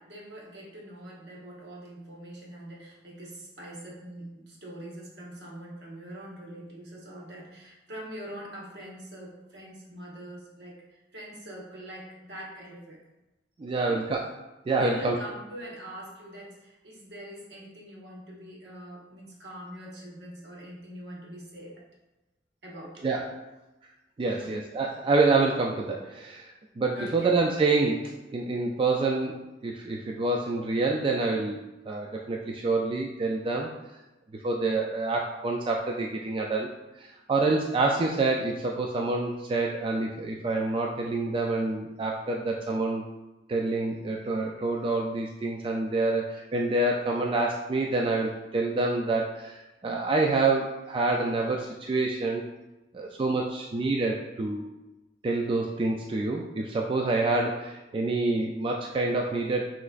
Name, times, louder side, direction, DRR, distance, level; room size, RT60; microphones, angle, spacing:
voice 1, 0.0-13.0 13.8-14.0 14.8-21.9 22.6-23.1 24.3-24.5 26.9-27.3, equal, 65° right, -3 dB, 1.1 m, -43 dB
voice 2, 13.6-14.3 14.7-15.2 23.0-23.3 24.2-31.6 31.9-33.7 34.4-36.7 37.0-43.0 43.5-52.5 52.9-54.7 55.2-59.7, right 3 dB, 30° right, 0 dB, 0.3 m, -27 dB
6.1 x 3.1 x 2.5 m, 1.0 s
head